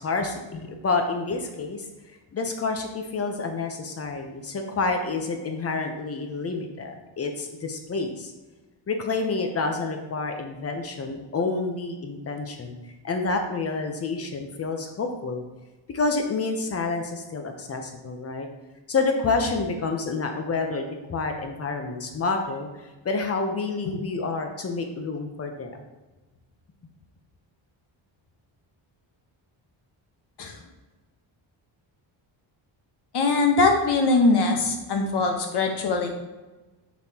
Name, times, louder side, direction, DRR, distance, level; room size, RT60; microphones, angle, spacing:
voice 1, 0.0-1.9 2.3-8.3 8.9-12.7 13.0-15.4 15.9-18.5 18.9-22.7 23.0-25.8, left 3 dB, 30° left, 4 dB, 0.7 m, -28 dB
voice 2, 33.1-36.1, left 3 dB, 55° left, 3 dB, 1.0 m, -22 dB
6.2 x 5.5 x 2.8 m, 1.2 s
wide cardioid pair, 175°, 49 cm